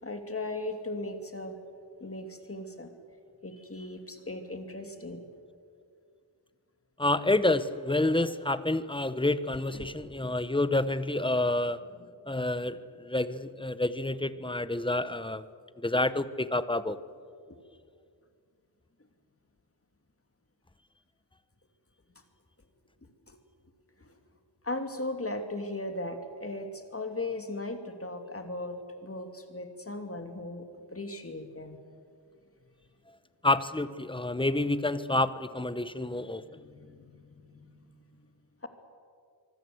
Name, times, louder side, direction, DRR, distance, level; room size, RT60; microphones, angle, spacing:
voice 1, 0.0-1.5 2.0-2.9 3.4-5.3 9.7-9.9 10.2-10.3 17.5-17.6 23.3-23.4 24.0-24.1 24.6-28.8 29.0-30.7 30.9-31.8 36.4-38.0, left 2 dB, 30° left, 6 dB, 2.7 m, -38 dB
voice 2, 7.0-11.8 12.3-15.4 15.8-17.0 33.4-36.4, left 2 dB, 10° left, 14 dB, 0.9 m, -28 dB
25.0 x 24.0 x 7.9 m, 2.3 s
wide cardioid pair, 115°, 45 cm